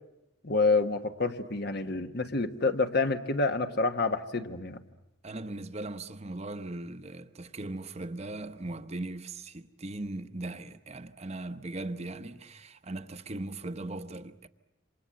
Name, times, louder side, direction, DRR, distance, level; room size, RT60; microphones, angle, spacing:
voice 1, 0.4-4.8, left 3 dB, 55° left, 1.3 m, -28 dB
voice 2, 5.2-14.5, right 2 dB, 35° right, 0.9 m, -39 dB
28.0 x 26.5 x 7.7 m
head